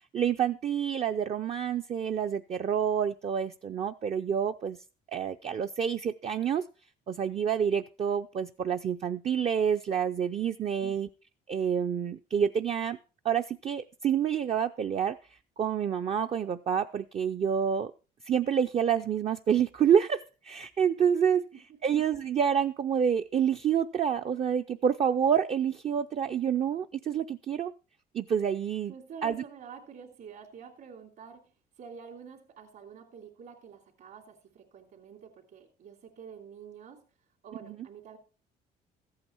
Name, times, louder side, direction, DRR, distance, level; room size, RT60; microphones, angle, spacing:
voice 1, 0.1-4.8 5.1-6.7 7.1-11.1 11.5-13.0 13.2-17.9 18.2-21.5 21.8-27.7 28.1-28.9 29.2-29.4, right 8 dB, 40° right, 7 dB, 0.5 m, -28 dB
voice 2, 28.9-31.5 31.8-37.0 37.4-38.2, right 6 dB, 65° right, -2 dB, 3.0 m, -48 dB
14.0 x 8.7 x 4.5 m, 0.35 s
cardioid pair, 110°, 17 cm